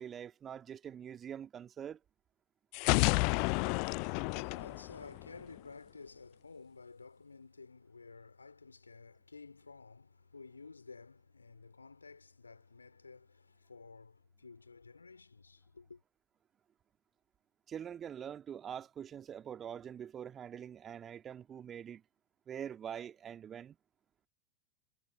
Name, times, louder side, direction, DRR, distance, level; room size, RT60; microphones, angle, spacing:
voice 1, 0.0-2.0 17.7-22.0 22.5-23.8, right 9 dB, 25° right, 2.0 m, -44 dB
sound 1, 2.7-5.6, left 38 dB, 45° left, 0.4 m, -31 dB
voice 2, 4.2-16.0, left 4 dB, 80° left, 3.0 m, -53 dB
figure-of-eight pair, 90°, 0 cm